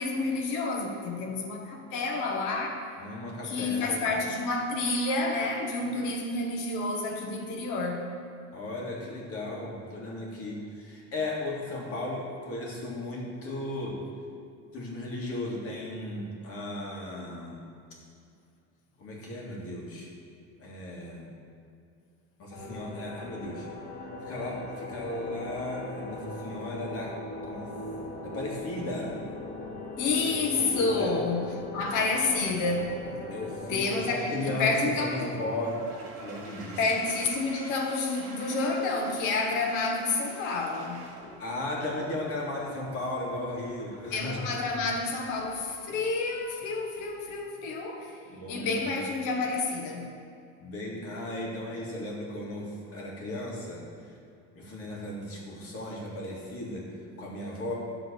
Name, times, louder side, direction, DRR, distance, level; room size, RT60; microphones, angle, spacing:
voice 1, 0.0-2.8 3.4-8.1 30.0-33.0 33.7-35.2 36.8-41.1 44.1-48.2 48.5-50.2, left 3 dB, 60° left, 2 dB, 1.5 m, -29 dB
voice 2, 3.0-4.2 8.5-14.0 14.7-17.6 19.0-20.1 20.6-21.3 22.4-23.7 24.2-27.7 28.2-29.2 30.5-31.2 33.3-35.8 36.1-36.8 41.4-44.6 48.2-49.0 50.6-53.9 54.6-56.9 57.2-57.7, left 1 dB, 40° left, -3 dB, 2.2 m, -36 dB
sound 1, 22.5-36.1, left 2 dB, 80° left, 1.6 m, -40 dB
Toilet flush, 34.3-47.4, right 2 dB, 50° right, 2.1 m, -49 dB
10.5 x 3.9 x 6.8 m, 2.4 s
cardioid pair, 135°, 34 cm